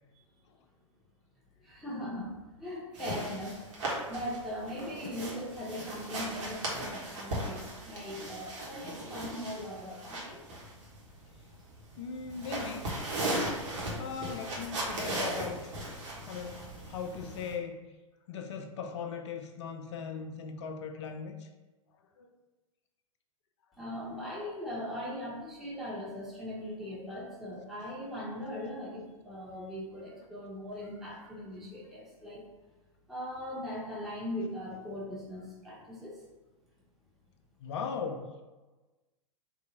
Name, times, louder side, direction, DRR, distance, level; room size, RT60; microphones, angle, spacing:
voice 1, 1.6-2.3 2.6-3.6 4.1-10.4 23.8-32.4 33.1-36.2, left 1 dB, ahead, -7 dB, 1.2 m, -39 dB
sound 1, 2.9-17.5, right 1 dB, 60° right, 1.4 m, -37 dB
voice 2, 12.0-12.8 14.0-15.7 16.3-16.6 16.9-17.8 18.3-21.5 22.2-22.3 37.6-38.2, left 6 dB, 55° left, 4 dB, 0.6 m, -38 dB
3.7 x 2.7 x 4.3 m, 1.2 s
figure-of-eight pair, 100°, 17 cm